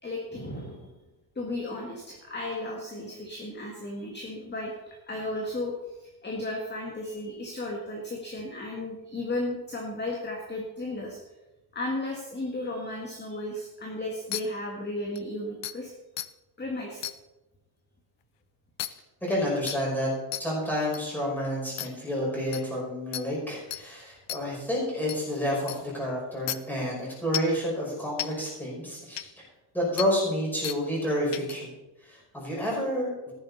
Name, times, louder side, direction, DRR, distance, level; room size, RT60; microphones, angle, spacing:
voice 1, 0.0-0.9 1.4-11.2 11.7-15.9 16.6-17.1, left 1 dB, 20° left, -1 dB, 2.0 m, -34 dB
sound 1, 14.3-14.4 15.2-15.3 15.6-15.7 16.2-16.3 17.0-17.2 18.8-18.9 19.7-19.8 20.3-20.4 20.9-21.0 21.8-21.9 22.5-22.6 23.1-23.2 23.7-23.8 24.3-24.4 25.1-25.2 25.7-25.8 26.5-26.6 27.3-27.6 28.2-28.3 29.2-29.3 30.0-30.1 30.6-30.8 31.3-31.6, left 14 dB, 60° left, 0.7 m, -32 dB
voice 2, 19.2-20.1 20.4-29.3 29.7-31.7 32.0-33.3, equal, 5° left, -5 dB, 5.5 m, -29 dB
14.0 x 11.0 x 4.2 m, 1.0 s
cardioid pair, 140°, 49 cm